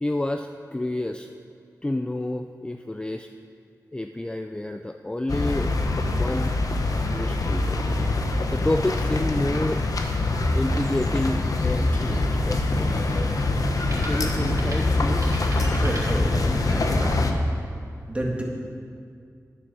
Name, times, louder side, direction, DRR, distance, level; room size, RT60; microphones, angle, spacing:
voice 1, 0.0-1.3 1.8-3.3 3.9-5.8 6.2-6.6 7.0-7.8 8.5-9.8 10.5-12.9 14.0-15.4, left 1 dB, 15° left, 6 dB, 0.4 m, -29 dB
sound 1, 5.3-17.3, left 2 dB, 65° left, 0.9 m, -24 dB
sound 2, 10.2-15.6, equal, 35° left, 2.2 m, -38 dB
sound 3, 13.8-16.8, right 1 dB, 50° right, 2.5 m, -42 dB
voice 2, 15.7-17.2 18.1-18.4, right 1 dB, 20° right, -2 dB, 1.9 m, -30 dB
9.7 x 6.7 x 7.0 m, 2.3 s
wide cardioid pair, 75°, 6 cm